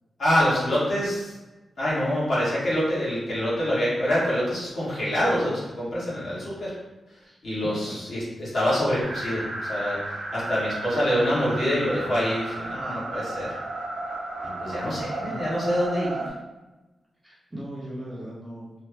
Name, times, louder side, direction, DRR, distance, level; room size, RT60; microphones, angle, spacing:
voice 1, 0.2-1.3 1.8-6.7 7.4-13.5 14.6-16.2, equal, 50° left, -8 dB, 1.3 m, -26 dB
voice 2, 7.6-8.0 15.2-15.4 17.2-18.8, right 1 dB, 10° right, -8 dB, 0.8 m, -38 dB
sound 1, 9.0-16.3, right 2 dB, 65° right, 0.5 m, -33 dB
3.1 x 2.1 x 3.3 m, 1.1 s
wide cardioid pair, 170°, 0 cm